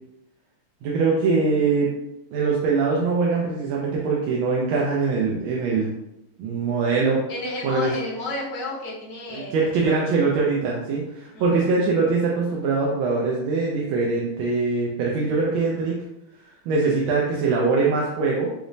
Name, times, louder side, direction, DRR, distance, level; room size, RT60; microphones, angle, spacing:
voice 1, 0.8-1.9 2.3-5.9 6.4-7.2 7.6-7.9 9.3-15.9 16.4-18.5, right 4 dB, 80° right, -3 dB, 1.3 m, -22 dB
voice 2, 7.3-10.0 11.3-11.7, left 2 dB, 55° left, -5 dB, 0.9 m, -32 dB
4.9 x 2.0 x 2.6 m, 0.88 s
omnidirectional pair, 2.3 m